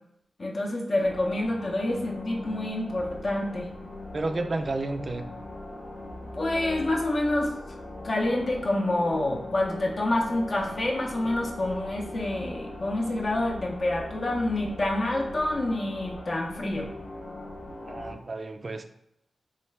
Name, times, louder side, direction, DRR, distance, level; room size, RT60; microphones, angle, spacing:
voice 1, 0.4-3.7 6.3-7.5 8.0-16.9, left 1 dB, 50° left, -1 dB, 0.6 m, -27 dB
sound 1, 1.0-18.2, left 1 dB, 75° left, 0.8 m, -40 dB
voice 2, 4.1-5.3 17.9-18.8, right 2 dB, 45° right, 7 dB, 0.3 m, -31 dB
3.2 x 2.3 x 3.2 m, 0.80 s
cardioid pair, 65°, 0 cm